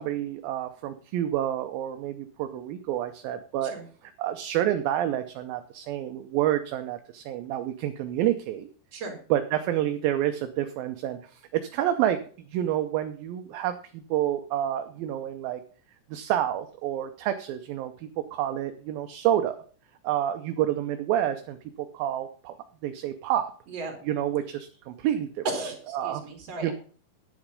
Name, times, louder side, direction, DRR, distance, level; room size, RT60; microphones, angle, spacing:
voice 1, 0.0-3.7 4.2-8.7 9.3-12.2 12.5-15.6 16.1-19.6 20.0-22.6 22.8-23.5 24.0-25.4 25.9-26.2 26.6-26.7, right 11 dB, 75° right, 8 dB, 2.4 m, -28 dB
voice 2, 23.7-24.0 25.5-26.7, right 2 dB, 40° right, 3 dB, 3.7 m, -35 dB
10.5 x 9.1 x 5.2 m, 0.43 s
omnidirectional pair, 4.5 m